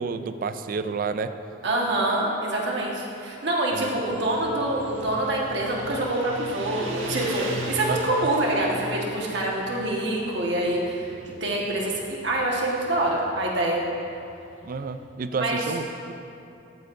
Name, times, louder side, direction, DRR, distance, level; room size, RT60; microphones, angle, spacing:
voice 1, 0.0-1.3 3.7-3.9 7.9-8.3 14.6-16.1, right 4 dB, 45° right, 10 dB, 0.3 m, -30 dB
voice 2, 1.6-11.1 11.4-13.8 15.3-15.6, right 1 dB, 60° right, -2 dB, 1.4 m, -26 dB
Motorcycle, 3.9-15.0, equal, 85° right, 1.3 m, -39 dB
13.0 x 7.9 x 2.6 m, 2.7 s
head